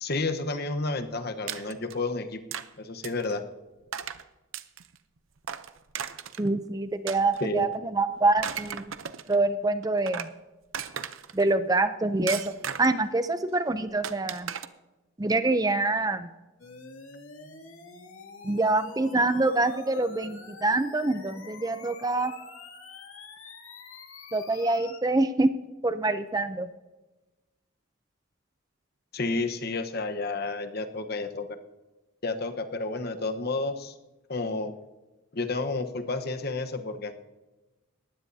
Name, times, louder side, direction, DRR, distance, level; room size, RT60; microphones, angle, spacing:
voice 1, 0.0-2.4 2.8-3.4 7.4-7.7 29.1-31.5 32.2-33.9 34.3-34.7 35.3-37.1, left 3 dB, 50° left, 8 dB, 1.1 m, -31 dB
sound 1, 1.5-2.0 2.5-2.7 3.0-3.3 3.9-4.2 4.5-5.0 5.4-6.5 7.1-7.8 8.2-9.4 9.8-10.3 10.7-11.5 12.3-13.1 14.0-14.7, right 8 dB, 75° right, 0.7 m, -36 dB
voice 2, 6.4-8.9 9.3-10.3 11.3-12.5 12.8-14.5 15.2-16.3 18.4-22.3 24.3-25.5 25.8-26.7, right 2 dB, 20° right, 11 dB, 0.5 m, -25 dB
sound 2, 16.6-25.0, left 4 dB, 85° left, 2.4 m, -47 dB
20.5 x 15.5 x 2.8 m, 1.1 s
head